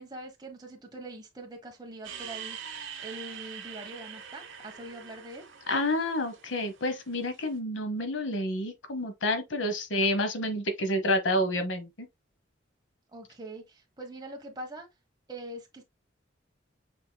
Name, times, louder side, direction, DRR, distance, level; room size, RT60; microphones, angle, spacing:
voice 1, 0.0-2.6 3.0-5.4 13.1-14.9 15.3-15.8, right 1 dB, 20° right, 1.1 m, -43 dB
sound 1, 2.0-7.4, right 8 dB, 80° right, 0.9 m, -44 dB
voice 2, 5.7-12.1, left 1 dB, 75° left, 1.0 m, -29 dB
6.3 x 3.7 x 2.2 m
head